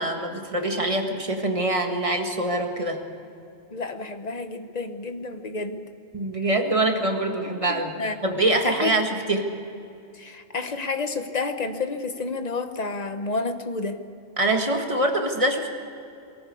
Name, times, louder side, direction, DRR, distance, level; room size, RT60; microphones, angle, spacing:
voice 1, 0.0-3.0 6.1-9.5 14.4-15.7, right 2 dB, 30° right, 3 dB, 1.9 m, -24 dB
voice 2, 3.7-5.9 7.7-8.2 8.6-9.0 10.1-14.0, left 3 dB, 40° left, 8 dB, 1.2 m, -30 dB
22.5 x 14.0 x 8.5 m, 2.6 s
omnidirectional pair, 1.1 m